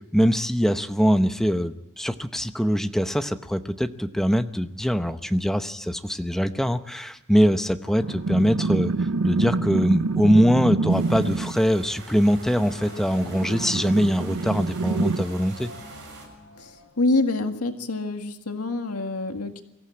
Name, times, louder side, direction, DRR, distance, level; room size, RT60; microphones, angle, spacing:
voice 1, 0.1-15.7, equal, ahead, 8 dB, 0.8 m, -23 dB
sound 1, 7.8-17.9, left 1 dB, 60° left, 4.9 m, -47 dB
sound 2, 8.0-11.6 13.1-15.2, right 3 dB, 70° right, 0.7 m, -26 dB
sound 3, 10.9-16.3, right 3 dB, 55° right, 7.1 m, -45 dB
voice 2, 17.0-19.6, left 2 dB, 85° left, 5 dB, 1.8 m, -26 dB
23.5 x 15.0 x 8.8 m, 0.95 s
head